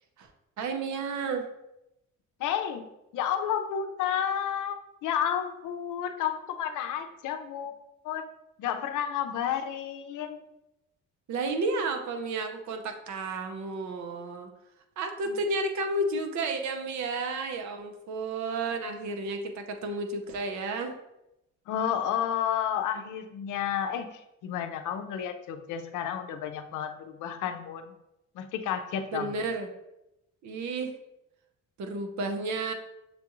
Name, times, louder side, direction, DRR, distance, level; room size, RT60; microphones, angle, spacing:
voice 1, 0.6-1.5 11.3-14.5 15.0-20.9 29.1-29.7 30.4-30.9 31.8-32.7, right 3 dB, 70° right, 5 dB, 0.8 m, -32 dB
voice 2, 2.4-2.9 3.1-8.3 8.6-10.4 15.3-15.4 21.7-27.9 28.3-29.4, left 9 dB, 80° left, 7 dB, 0.6 m, -31 dB
6.7 x 2.4 x 3.0 m, 0.89 s
cardioid pair, 90°, 30 cm